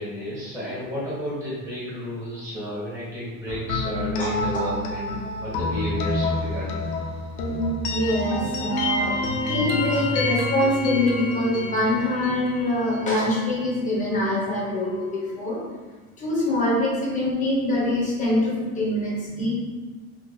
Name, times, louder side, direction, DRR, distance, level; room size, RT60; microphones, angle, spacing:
voice 1, 0.0-6.9, equal, 10° right, -9 dB, 1.3 m, -32 dB
sound 1, 3.7-13.4, left 2 dB, 90° left, 0.7 m, -28 dB
voice 2, 4.2-4.7 7.9-9.1 9.5-15.6 16.2-19.5, left 1 dB, 20° left, -5 dB, 0.8 m, -24 dB
2.9 x 2.5 x 4.0 m, 1.3 s
cardioid pair, 160°, 40 cm